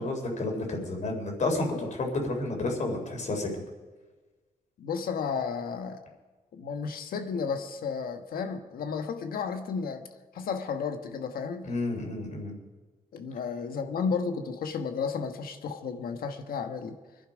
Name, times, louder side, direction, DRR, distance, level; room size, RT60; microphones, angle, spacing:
voice 1, 0.0-3.5 11.6-12.5, left 2 dB, 55° left, 2 dB, 3.9 m, -30 dB
voice 2, 4.8-6.0 6.5-10.1 10.3-11.7 13.1-17.0, left 5 dB, 85° left, 7 dB, 1.4 m, -33 dB
24.0 x 11.5 x 5.2 m, 1.3 s
wide cardioid pair, 125°, 15 cm